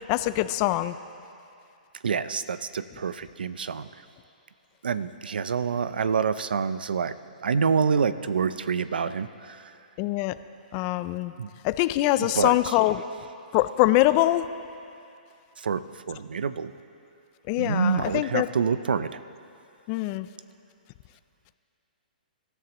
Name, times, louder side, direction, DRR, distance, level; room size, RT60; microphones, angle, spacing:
voice 1, 0.1-1.0 10.0-10.4 10.7-11.3 11.6-13.0 13.5-14.5 17.5-18.5 19.9-20.3, left 16 dB, 30° left, 13 dB, 0.4 m, -23 dB
voice 2, 2.0-3.9 4.8-7.2 7.4-9.6 11.4-11.5 12.2-12.7 15.6-16.7 17.6-19.2, right 6 dB, 85° right, 14 dB, 0.6 m, -27 dB
25.5 x 13.5 x 3.0 m, 2.5 s
hypercardioid pair, 150°, 5 cm